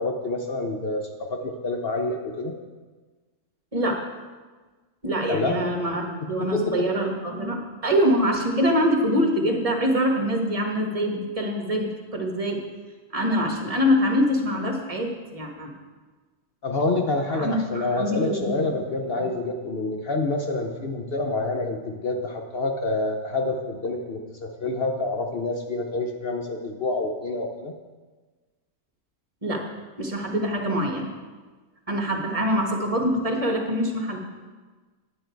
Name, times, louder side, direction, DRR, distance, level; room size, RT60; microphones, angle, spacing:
voice 1, 0.0-2.5 5.3-5.6 6.5-6.7 16.6-27.7, left 2 dB, 50° left, 3 dB, 0.9 m, -27 dB
voice 2, 3.7-4.0 5.0-12.6 13.1-15.7 17.3-18.6 19.2-19.3 29.4-29.6 30.0-31.1 31.9-34.2, equal, 25° right, 1 dB, 1.4 m, -24 dB
10.0 x 9.2 x 4.6 m, 1.3 s
omnidirectional pair, 1.6 m